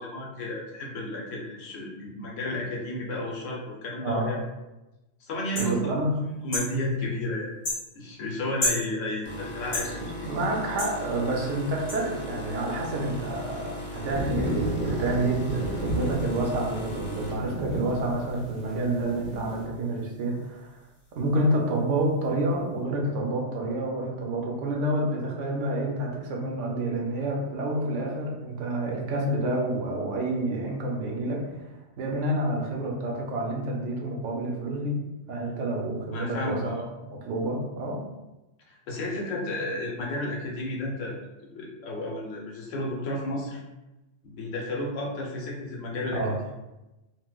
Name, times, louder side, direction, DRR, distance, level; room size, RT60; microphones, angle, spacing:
voice 1, 0.0-4.4 5.2-5.9 6.4-7.5 7.9-10.3 36.1-36.8 38.7-41.2 41.5-43.6 44.2-46.2, left 1 dB, 90° left, -2 dB, 1.1 m, -32 dB
sound 1, 5.6-5.7 6.5-6.7 7.6-7.8 8.6-8.8 9.7-9.9 10.8-10.9 11.9-12.0, left 2 dB, 45° left, 1.3 m, -28 dB
voice 2, 5.6-6.2 10.3-20.7 21.1-31.5 32.0-35.0 35.3-36.9 37.1-38.0 46.1-46.3, right 1 dB, 80° right, -1 dB, 1.0 m, -28 dB
sound 2, 9.2-18.4 18.8-19.1 20.0-20.1, left 1 dB, 20° left, 0.3 m, -38 dB
sound 3, 14.1-19.7, right 1 dB, 45° right, 0.7 m, -33 dB
4.2 x 2.1 x 2.3 m, 1.0 s
omnidirectional pair, 1.3 m